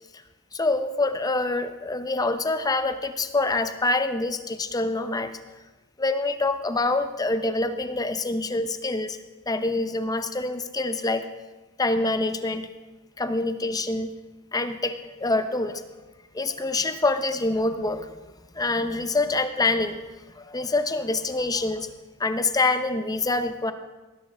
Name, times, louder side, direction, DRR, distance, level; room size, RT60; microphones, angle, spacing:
voice 1, 0.5-5.3 6.0-11.3 11.8-12.7 13.2-14.1 14.5-15.8 16.3-18.1 18.5-20.0 20.3-21.9 22.2-23.7, left 2 dB, 20° left, 10 dB, 0.6 m, -26 dB
19.0 x 11.0 x 3.4 m, 1.2 s
head